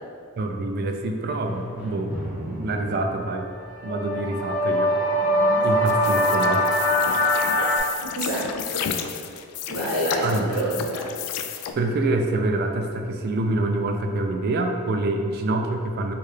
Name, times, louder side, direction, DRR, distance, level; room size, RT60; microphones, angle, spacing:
voice 1, 0.4-3.5 3.8-4.9 5.6-6.8 10.2-10.7 11.7-16.1, right 2 dB, 45° right, 4 dB, 0.3 m, -26 dB
Drum, 1.4-3.5, equal, 5° right, 0.6 m, -35 dB
sound 1, 3.5-7.8, left 1 dB, 35° left, 0.6 m, -22 dB
voice 2, 5.2-5.6 8.1-8.8 9.7-11.1, equal, 75° right, -8 dB, 1.3 m, -28 dB
sound 2, 5.9-11.7, left 8 dB, 90° left, 0.3 m, -32 dB
4.5 x 2.3 x 3.2 m, 2.1 s
head